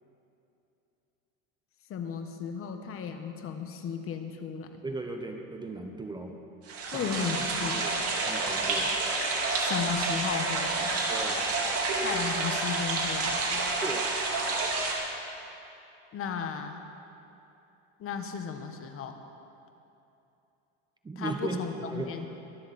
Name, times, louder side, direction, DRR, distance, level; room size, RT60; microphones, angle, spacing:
voice 1, 1.9-4.8 6.9-7.9 9.5-10.9 12.0-13.8 16.1-16.8 18.0-19.2 21.2-22.3, left 6 dB, 40° left, 6 dB, 1.3 m, -35 dB
voice 2, 4.8-6.4 6.8-7.1 7.6-8.0 8.3-8.9 11.1-11.5 13.5-14.1 21.0-22.3, right 2 dB, 10° right, 4 dB, 0.9 m, -37 dB
sound 1, 6.7-14.9, right 3 dB, 40° right, 2.9 m, -29 dB
23.0 x 12.5 x 4.2 m, 2.9 s
cardioid pair, 135°, 35 cm